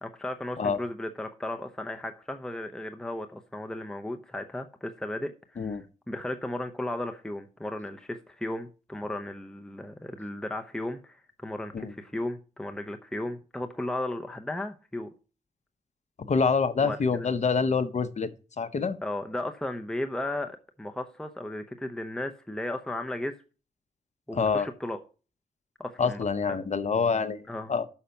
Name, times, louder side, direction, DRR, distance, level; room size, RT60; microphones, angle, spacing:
voice 1, 0.0-15.1 16.8-17.3 19.0-23.3 24.3-25.0 25.8-26.6 27.5-27.7, left 1 dB, 5° left, 0.8 m, -35 dB
voice 2, 16.2-18.3 18.6-19.0 24.3-24.7 26.0-27.9, left 5 dB, 50° left, 0.8 m, -26 dB
6.5 x 5.7 x 7.0 m
cardioid pair, 80°, 15 cm